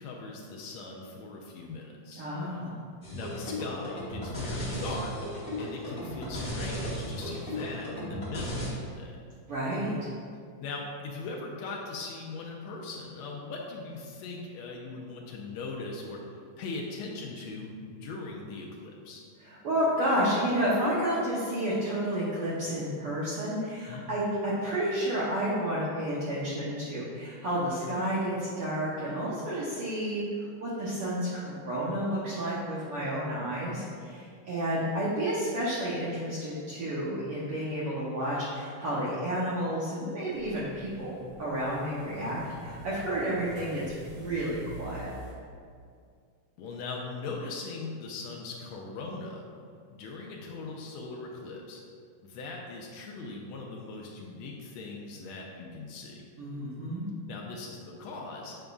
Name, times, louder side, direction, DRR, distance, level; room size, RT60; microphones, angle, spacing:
voice 1, 0.0-2.2 3.1-5.1 5.6-9.1 10.6-19.2 23.9-24.1 46.6-49.4 49.9-51.8 52.2-56.2 57.3-58.6, left 3 dB, 80° left, -1 dB, 1.5 m, -40 dB
voice 2, 2.2-2.7 6.2-6.3 9.5-10.0 19.4-30.2 30.6-45.2 56.4-57.0, equal, 85° right, -8 dB, 1.2 m, -31 dB
sound 1, 3.0-8.7, equal, 40° left, 0.7 m, -35 dB
sound 2, 40.3-45.3, right 2 dB, 70° right, 2.7 m, -46 dB
7.9 x 5.1 x 2.3 m, 2.2 s
omnidirectional pair, 3.7 m